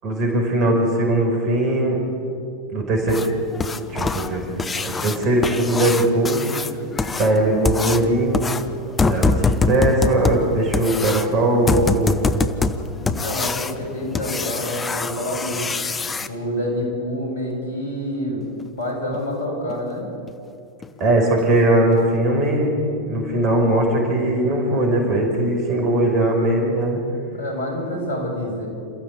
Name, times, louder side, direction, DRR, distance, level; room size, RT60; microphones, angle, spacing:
voice 1, 0.0-2.0 2.7-3.2 3.9-6.4 7.2-8.5 9.1-12.2 21.0-22.8 23.1-27.0, right 1 dB, 35° right, 1 dB, 5.5 m, -20 dB
sound 1, 3.1-16.3 18.6-18.7 19.1-19.2 19.7-19.8 20.3-20.4 20.8-21.0 21.4-21.5 21.9-22.0, left 3 dB, 15° left, 1.1 m, -24 dB
voice 2, 13.0-15.6 16.3-18.5 18.8-20.1 27.3-28.7, left 1 dB, 65° left, 1 dB, 7.6 m, -27 dB
28.0 x 14.5 x 8.6 m, 2.5 s
figure-of-eight pair, 90°, 0 cm